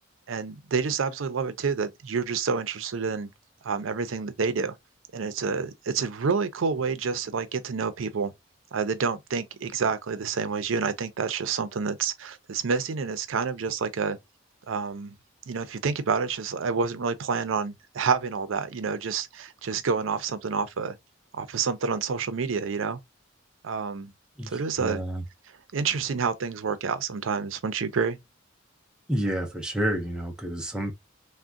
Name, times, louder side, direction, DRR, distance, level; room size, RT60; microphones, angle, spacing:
voice 1, 0.3-3.3 3.6-4.8 5.1-8.3 8.7-14.2 14.7-15.1 15.5-21.0 21.3-23.0 23.6-24.1 24.5-25.0 25.7-28.2, right 5 dB, 80° right, 0.5 m, -28 dB
voice 2, 24.4-25.2 29.1-30.9, equal, 5° right, 0.4 m, -29 dB
3.5 x 2.1 x 2.4 m
head